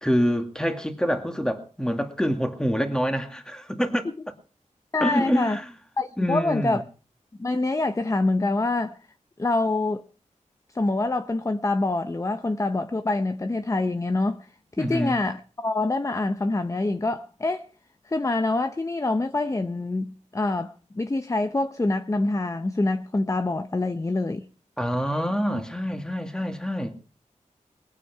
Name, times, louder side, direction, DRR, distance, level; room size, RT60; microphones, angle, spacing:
voice 1, 0.0-4.1 5.0-5.7 6.2-6.8 14.8-15.2 24.8-26.9, equal, 5° left, 2.2 m, -26 dB
voice 2, 4.9-5.6 6.0-6.8 7.4-9.0 9.4-10.0 10.7-14.5 14.8-17.6 18.1-24.5, left 2 dB, 25° left, 0.7 m, -25 dB
20.5 x 9.1 x 5.9 m
wide cardioid pair, 95°, 13 cm